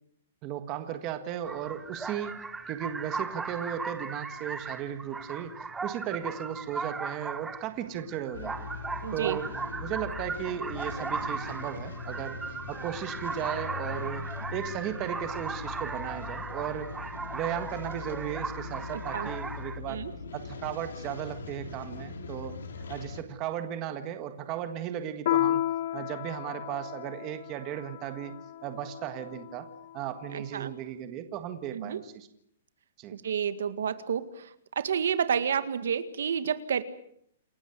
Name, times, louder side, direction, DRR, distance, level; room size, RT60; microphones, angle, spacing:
voice 1, 0.4-2.4 2.7-5.5 5.8-8.7 9.1-12.4 12.7-16.9 17.3-20.0 20.3-25.7 25.9-28.3 28.6-32.3 33.0-33.2, right 10 dB, 20° right, 9 dB, 1.6 m, -36 dB
sound 1, 1.4-19.8, right 4 dB, 5° right, 0.9 m, -37 dB
sound 2, 8.3-23.2, left 5 dB, 90° left, 4.3 m, -41 dB
voice 2, 9.0-9.4 19.1-19.3 19.9-20.1 30.3-30.7 31.7-32.0 33.1-36.8, right 7 dB, 70° right, 12 dB, 1.9 m, -30 dB
Piano, 25.3-30.2, left 12 dB, 45° left, 1.0 m, -33 dB
28.5 x 14.5 x 9.2 m, 0.71 s
hypercardioid pair, 175°, 0 cm